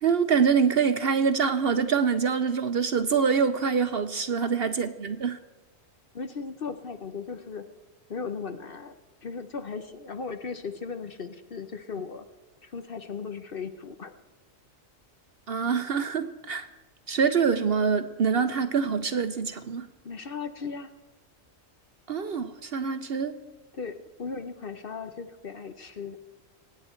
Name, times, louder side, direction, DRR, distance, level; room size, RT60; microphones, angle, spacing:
voice 1, 0.0-5.4 15.5-16.7 17.1-19.9 22.1-23.4, right 6 dB, 55° right, 10 dB, 0.8 m, -25 dB
voice 2, 6.1-7.7 8.1-8.9 9.2-12.3 12.6-14.1 20.0-20.9 23.7-26.2, left 5 dB, 50° left, 8 dB, 0.9 m, -37 dB
25.0 x 9.4 x 4.4 m, 1.2 s
omnidirectional pair, 1.4 m